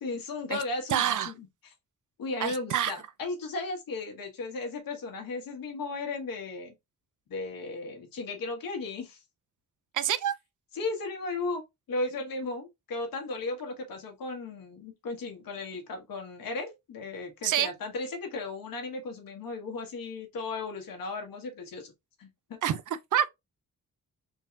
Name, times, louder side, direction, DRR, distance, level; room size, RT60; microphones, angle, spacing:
voice 1, 0.0-1.7 2.2-6.7 7.3-9.2 10.7-11.6 11.9-21.9 22.2-22.6, left 3 dB, 85° left, 1.5 m, -35 dB
voice 2, 0.9-1.3 2.4-2.9 9.9-10.3 17.4-17.7 22.6-22.8 23.1-23.3, right 10 dB, 65° right, 0.5 m, -26 dB
3.9 x 2.8 x 2.5 m
cardioid pair, 95°, 33 cm